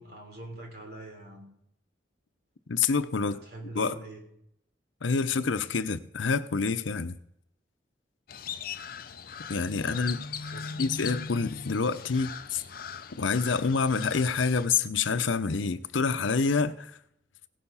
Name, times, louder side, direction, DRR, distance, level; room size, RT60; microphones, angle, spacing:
voice 1, 0.0-1.5 3.2-4.2 9.8-10.0 10.5-10.9, right 2 dB, 55° right, 3.5 m, -44 dB
voice 2, 2.7-3.4 3.7-4.0 5.0-7.2 9.5-10.2 10.8-12.6 13.1-16.9, left 5 dB, 85° left, 0.7 m, -27 dB
Crow, 8.3-14.7, left 6 dB, 50° left, 0.5 m, -39 dB
17.0 x 6.8 x 5.6 m
head